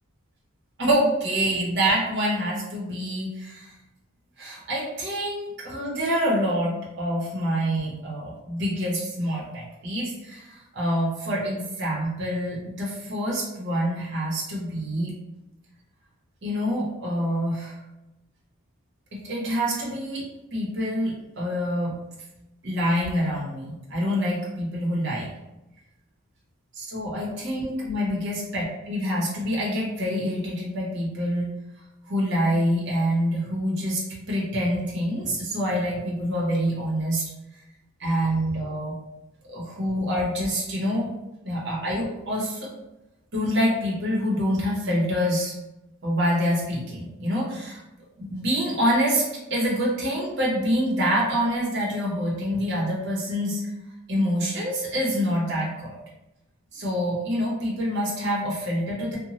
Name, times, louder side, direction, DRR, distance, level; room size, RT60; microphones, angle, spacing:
voice 1, 0.8-3.7 4.4-15.1 16.4-17.7 19.1-21.9 22.6-25.3 26.8-31.5 32.1-37.3 38.0-38.9 39.5-41.1 41.4-42.7 43.3-45.5 46.0-47.8 48.2-53.7 54.1-56.0 56.7-59.2, equal, 50° right, -4 dB, 0.8 m, -26 dB
2.9 x 2.1 x 2.8 m, 0.96 s
head